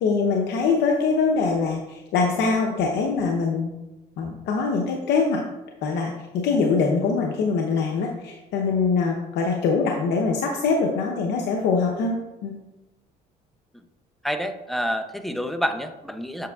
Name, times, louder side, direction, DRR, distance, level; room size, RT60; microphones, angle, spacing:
voice 1, 0.0-3.7 4.2-5.4 5.8-12.5, left 4 dB, 80° left, 1 dB, 0.8 m, -23 dB
voice 2, 14.2-16.5, equal, ahead, 7 dB, 0.5 m, -28 dB
7.6 x 6.7 x 2.4 m, 1.0 s
cardioid pair, 110°, 17 cm